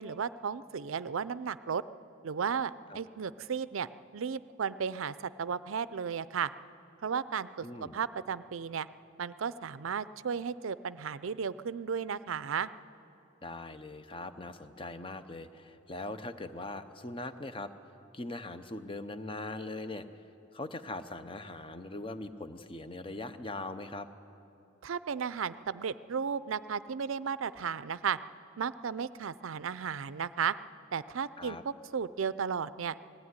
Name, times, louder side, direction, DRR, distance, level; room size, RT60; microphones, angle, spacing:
voice 1, 0.0-1.8 2.2-6.5 7.0-8.9 9.2-12.7 24.8-28.2 28.6-30.5 30.9-32.9, right 6 dB, 80° right, 16 dB, 0.5 m, -34 dB
voice 2, 7.6-8.0 13.4-17.7 18.1-20.1 20.5-24.1 31.4-31.6, left 2 dB, 25° left, 10 dB, 0.7 m, -41 dB
19.5 x 15.0 x 9.6 m, 2.9 s
head